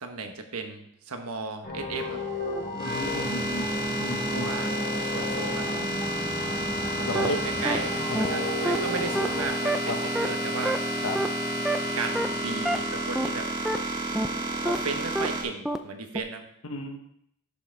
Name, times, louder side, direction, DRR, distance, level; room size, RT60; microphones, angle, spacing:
voice 1, 0.0-2.2 4.3-5.9 6.9-10.8 11.9-13.5 14.6-16.4, right 3 dB, 85° right, 5 dB, 1.1 m, -35 dB
sound 1, 1.6-9.5, equal, 40° left, 3.9 m, -34 dB
sound 2, 1.9-15.4, equal, 20° right, 1.6 m, -31 dB
voice 2, 2.8-3.7 4.0-4.5 7.0-7.4 8.1-8.5 9.9-10.1 11.0-11.2 16.6-17.0, left 2 dB, 80° left, 4 dB, 1.1 m, -33 dB
sound 3, 7.1-7.3 7.6-7.8 8.1-8.3 8.6-8.8 9.1-9.3 9.6-9.8 10.1-10.3 10.6-10.8 11.1-11.3 11.6-11.8 12.1-12.3 12.6-12.8 13.1-13.3 13.6-13.8 14.1-14.3 14.6-14.8 15.1-15.3 15.6-15.8 16.1-16.2, right 1 dB, 5° right, 0.4 m, -26 dB
11.5 x 6.3 x 3.4 m, 0.73 s
head